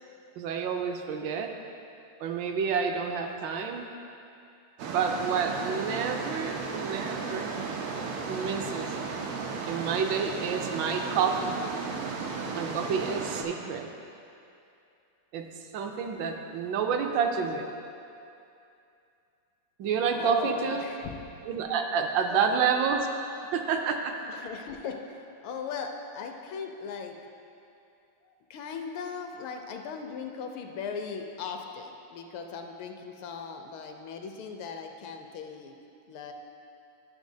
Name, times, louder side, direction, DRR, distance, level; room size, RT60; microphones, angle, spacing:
voice 1, 0.4-1.5 2.2-3.9 4.9-7.6 8.3-8.9 9.7-11.5 12.5-13.9 15.3-15.4 15.7-17.7 19.8-20.9 21.5-23.1 23.5-24.1, right 6 dB, 75° right, 4 dB, 1.1 m, -29 dB
sound 1, 4.8-13.4, right 4 dB, 90° right, 1.6 m, -34 dB
voice 2, 20.1-21.2 22.3-22.4 24.2-27.2 28.2-35.8 36.1-36.3, left 6 dB, 75° left, 4 dB, 1.4 m, -38 dB
11.5 x 6.7 x 2.7 m, 2.6 s
omnidirectional pair, 2.4 m